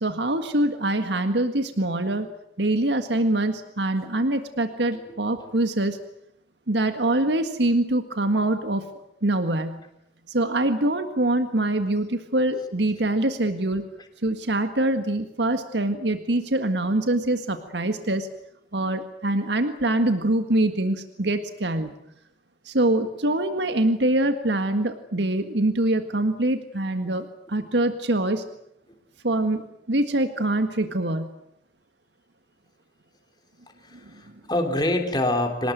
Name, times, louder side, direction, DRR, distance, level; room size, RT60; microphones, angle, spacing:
voice 1, 0.0-2.3 2.6-6.0 6.7-8.8 9.2-9.8 10.3-13.8 14.2-18.3 18.7-21.9 22.7-28.4 29.2-31.3, right 1 dB, 75° right, 8 dB, 1.8 m, -24 dB
voice 2, 33.8-35.7, left 1 dB, 25° left, 4 dB, 3.5 m, -26 dB
26.0 x 19.5 x 9.2 m, 0.77 s
head